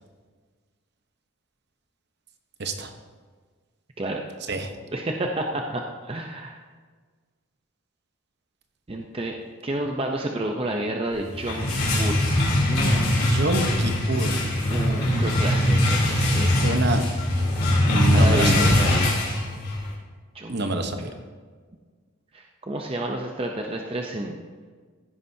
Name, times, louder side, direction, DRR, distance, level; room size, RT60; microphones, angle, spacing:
voice 1, 2.6-2.9 4.5-4.7 13.2-14.5 16.1-16.3 16.6-17.0 17.9-18.8 20.5-21.1, right 2 dB, 50° right, 6 dB, 0.9 m, -26 dB
voice 2, 4.9-6.6 8.9-12.3 12.7-13.4 14.7-16.7 18.1-19.1 20.3-20.6 22.3-24.4, right 1 dB, 25° right, 2 dB, 0.6 m, -30 dB
sound 1, 11.2-19.9, left 1 dB, 45° left, 3.3 m, -21 dB
15.5 x 9.9 x 2.7 m, 1.5 s
head